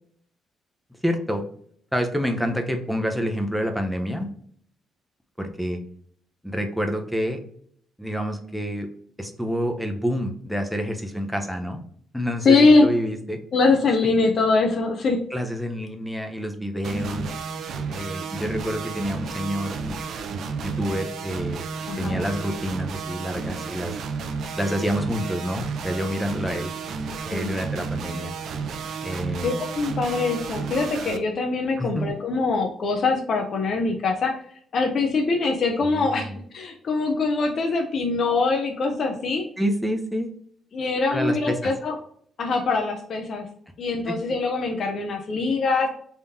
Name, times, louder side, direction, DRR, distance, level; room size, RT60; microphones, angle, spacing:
voice 1, 1.0-1.4 1.9-4.3 5.4-5.8 6.4-7.4 8.0-8.9 9.2-11.8 12.1-13.4 15.3-17.3 17.9-21.6 22.0-23.9 24.6-26.7 27.3-28.3 29.0-29.6 31.8-32.1 35.8-36.4 39.6-40.3 41.1-41.7 44.1-44.2, equal, ahead, 4 dB, 0.6 m, -28 dB
voice 2, 12.4-12.9 13.5-15.2 21.9-22.2 27.3-27.5 29.4-34.3 34.7-39.4 40.7-41.9 42.4-43.5 43.8-45.9, left 3 dB, 45° left, 2 dB, 0.6 m, -22 dB
sound 1, 16.8-31.2, right 5 dB, 65° right, 0.5 m, -32 dB
3.5 x 2.8 x 3.5 m, 0.62 s
cardioid pair, 140°, 0 cm